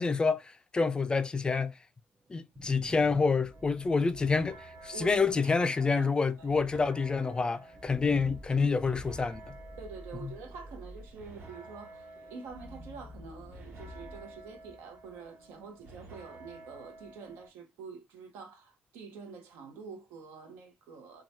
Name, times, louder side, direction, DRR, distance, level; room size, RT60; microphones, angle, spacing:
voice 1, 0.0-1.7 2.3-9.4 10.2-10.3, left 4 dB, 25° left, 0.3 m, -28 dB
sound 1, 2.3-15.1, equal, 20° right, 0.6 m, -50 dB
sound 2, 3.5-17.5, right 2 dB, 65° right, 1.4 m, -52 dB
voice 2, 4.9-6.1 6.4-6.5 9.8-21.2, right 5 dB, 85° right, 0.8 m, -47 dB
2.9 x 2.2 x 2.7 m
cardioid pair, 95°, 4 cm